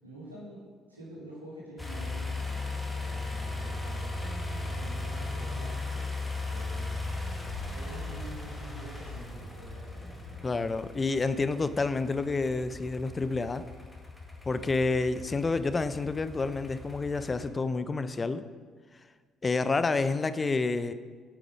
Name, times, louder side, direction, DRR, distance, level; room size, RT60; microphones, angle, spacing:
voice 1, 0.0-0.6 0.9-7.0 7.7-10.5, right 1 dB, 85° right, -6 dB, 2.3 m, -47 dB
sound 1, 1.8-17.5, left 2 dB, 10° left, 2.0 m, -37 dB
voice 2, 10.4-13.6 14.5-18.4 19.4-20.9, left 3 dB, 30° left, 13 dB, 0.5 m, -29 dB
8.7 x 8.5 x 5.0 m, 1.5 s
figure-of-eight pair, 45°, 0 cm